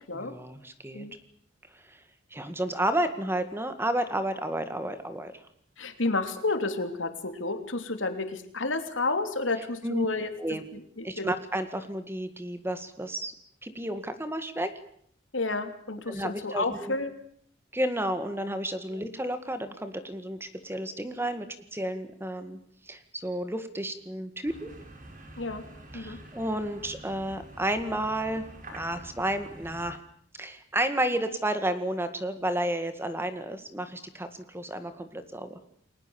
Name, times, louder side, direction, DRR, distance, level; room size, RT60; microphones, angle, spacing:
voice 1, 0.1-1.1 1.9-2.0 2.3-5.3 9.8-10.1 10.4-10.6 11.0-13.3 13.6-14.7 16.1-17.0 17.7-22.6 22.9-24.7 25.9-28.5 28.7-30.0 30.4-35.6, right 1 dB, 10° right, 10 dB, 2.0 m, -31 dB
voice 2, 5.8-10.3 10.7-11.3 15.3-17.1 18.9-19.0 25.4-25.6 25.9-26.2, left 3 dB, 85° left, 7 dB, 3.1 m, -31 dB
sound 1, 24.4-29.9, right 1 dB, 45° right, 5.4 m, -47 dB
30.0 x 20.5 x 7.2 m, 0.65 s
head